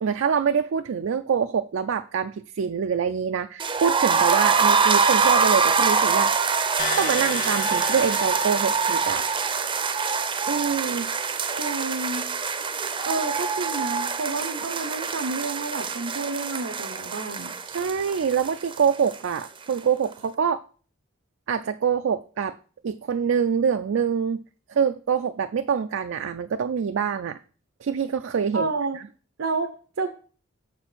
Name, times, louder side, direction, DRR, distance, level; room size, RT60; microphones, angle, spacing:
voice 1, 0.0-6.3 7.0-9.2 10.5-11.1 13.3-13.4 17.7-20.6 21.5-22.6 22.8-24.4 24.7-27.4 27.8-28.7, right 7 dB, 70° right, 0.4 m, -25 dB
sound 1, 3.6-19.4 19.7-19.8 20.1-20.2, right 5 dB, 25° right, 0.6 m, -24 dB
sound 2, 6.8-9.7, left 4 dB, 40° left, 1.5 m, -34 dB
voice 2, 11.5-12.3 13.0-17.5 28.5-29.0 29.4-30.1, right 3 dB, 85° right, 0.8 m, -30 dB
6.9 x 4.3 x 6.1 m
head